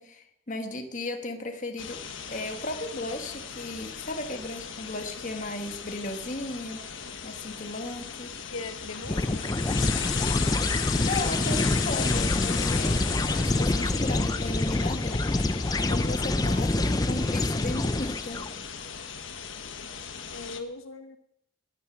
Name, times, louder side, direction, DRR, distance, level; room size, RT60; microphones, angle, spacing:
voice 1, 0.0-2.0 2.3-7.0 7.2-8.3 9.1-9.4 10.7-13.0 13.3-18.4, left 2 dB, 35° left, 5 dB, 1.5 m, -36 dB
sound 1, 1.8-20.6, left 7 dB, 65° left, 1.3 m, -36 dB
voice 2, 8.5-9.4 20.3-21.2, left 3 dB, 85° left, 8 dB, 1.1 m, -39 dB
sound 2, 9.0-18.5, left 2 dB, 20° left, 0.4 m, -26 dB
18.5 x 10.0 x 6.1 m, 0.78 s
head